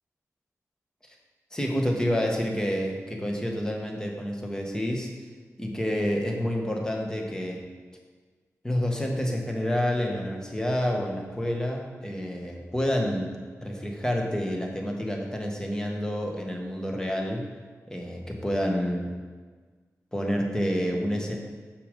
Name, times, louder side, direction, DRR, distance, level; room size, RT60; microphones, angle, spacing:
voice 1, 1.5-5.1 5.6-7.7 8.6-13.3 13.6-17.5 17.9-19.1 20.1-21.4, equal, 10° left, 1 dB, 1.2 m, -28 dB
6.7 x 6.5 x 5.1 m, 1.5 s
wide cardioid pair, 110°, 6 cm